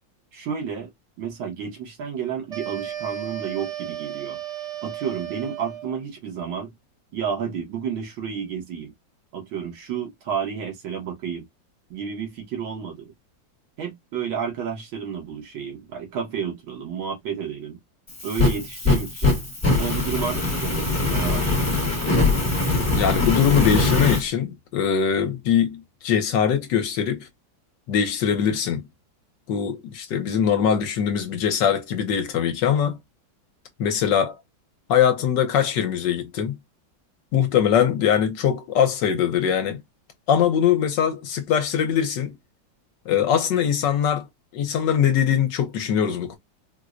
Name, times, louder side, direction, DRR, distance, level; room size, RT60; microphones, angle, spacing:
voice 1, 0.3-0.9 1.2-4.4 4.8-6.7 7.1-8.9 9.3-11.5 11.9-13.1 13.8-17.8 18.2-19.4 19.8-21.8, right 7 dB, 85° right, 2.0 m, -31 dB
sound 1, 2.5-6.0, right 12 dB, 30° right, 0.8 m, -34 dB
Fire, 18.1-24.2, left 2 dB, 15° left, 0.6 m, -22 dB
voice 2, 22.9-27.3 27.9-28.8 29.5-33.0 33.8-34.4 34.9-36.5 37.3-39.8 40.3-42.3 43.1-44.3 44.5-46.4, left 8 dB, 70° left, 1.3 m, -22 dB
4.5 x 2.1 x 2.4 m
omnidirectional pair, 2.1 m